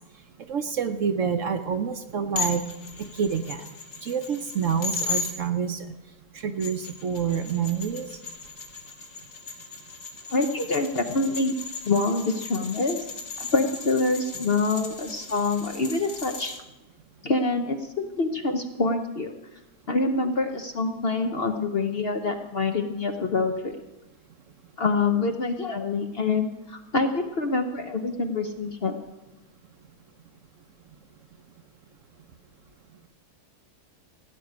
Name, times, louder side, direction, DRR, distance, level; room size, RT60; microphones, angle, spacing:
voice 1, 0.5-2.6 3.0-3.6 4.0-5.9 6.3-8.1, right 7 dB, 60° right, 7 dB, 1.0 m, -27 dB
sound 1, 2.4-5.3 6.4-16.6, left 4 dB, 70° left, 2.2 m, -36 dB
voice 2, 10.3-11.6 11.9-13.0 13.4-16.6 17.2-19.3 19.9-23.8 24.8-29.0, left 3 dB, 45° left, 5 dB, 0.8 m, -26 dB
16.0 x 6.4 x 9.4 m, 1.0 s
omnidirectional pair, 1.8 m